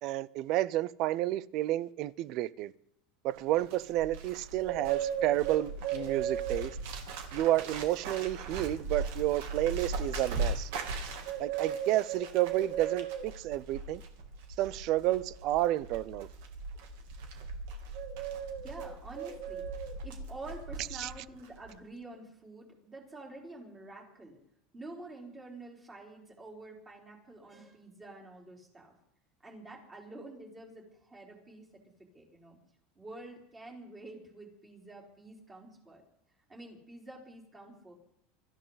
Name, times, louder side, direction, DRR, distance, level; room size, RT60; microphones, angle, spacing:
voice 1, 0.0-2.7 3.2-6.8 7.3-10.7 11.4-14.0 14.6-16.3 21.0-21.1, right 15 dB, 45° right, 0.5 m, -30 dB
Bird, 3.4-21.2 21.4-21.8, right 5 dB, 70° right, 2.7 m, -37 dB
voice 2, 18.5-19.6 20.0-24.4 24.7-28.9 29.4-31.7 32.1-32.6 33.0-36.0 36.5-37.9, right 2 dB, 15° right, 3.9 m, -48 dB
25.0 x 14.0 x 4.0 m
supercardioid pair, 165°, 0 cm